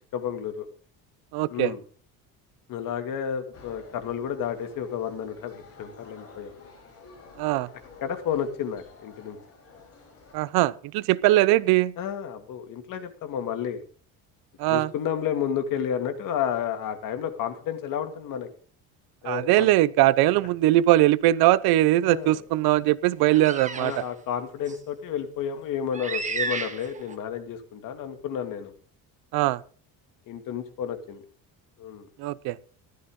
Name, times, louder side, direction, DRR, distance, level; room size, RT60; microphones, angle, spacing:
voice 1, 0.1-0.7 1.5-1.8 2.7-6.5 8.0-9.4 12.0-13.8 14.7-18.5 19.2-19.7 22.0-22.4 23.8-28.7 30.3-31.2 31.8-32.1, left 8 dB, 60° left, 2.3 m, -31 dB
voice 2, 1.3-1.7 7.4-7.7 10.3-11.9 14.6-14.9 19.2-23.9 29.3-29.6 32.2-32.6, right 15 dB, 80° right, 0.8 m, -21 dB
sound 1, 3.5-10.3, left 3 dB, 40° left, 6.5 m, -50 dB
sound 2, 23.3-24.0 24.7-24.8 25.9-27.2, right 4 dB, 20° right, 1.4 m, -32 dB
15.0 x 12.5 x 3.8 m
cardioid pair, 165°, 37 cm